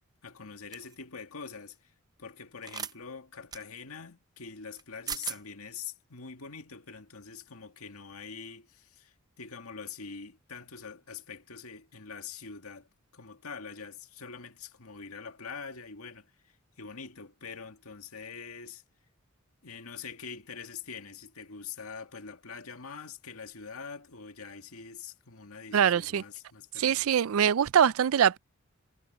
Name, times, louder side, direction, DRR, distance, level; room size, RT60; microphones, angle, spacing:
voice 1, 0.2-1.9 2.2-12.9 13.1-18.8 19.6-27.1, left 5 dB, 85° left, 2.0 m, -44 dB
sound 1, 0.7-0.9 2.6-2.9 3.5-3.6 4.8-4.9 5.1-5.4, right 6 dB, 20° right, 0.6 m, -37 dB
voice 2, 25.7-26.2 26.8-28.4, right 8 dB, 70° right, 0.4 m, -23 dB
head